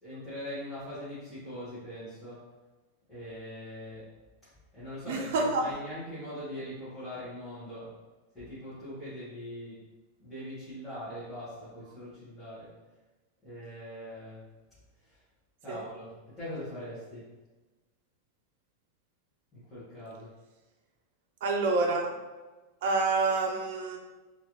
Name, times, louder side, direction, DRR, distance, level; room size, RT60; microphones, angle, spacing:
voice 1, 0.0-2.5 3.1-4.1 4.7-8.0 8.3-9.9 10.2-12.7 13.4-14.5 15.1-15.2 15.6-17.3 19.5-20.3, equal, 5° left, -14 dB, 1.1 m, -42 dB
voice 2, 5.1-5.7 15.7-15.8 21.4-22.1 22.8-24.0, right 3 dB, 60° right, 1 dB, 0.5 m, -27 dB
3.0 x 2.5 x 3.0 m, 1.2 s
supercardioid pair, 170°, 0 cm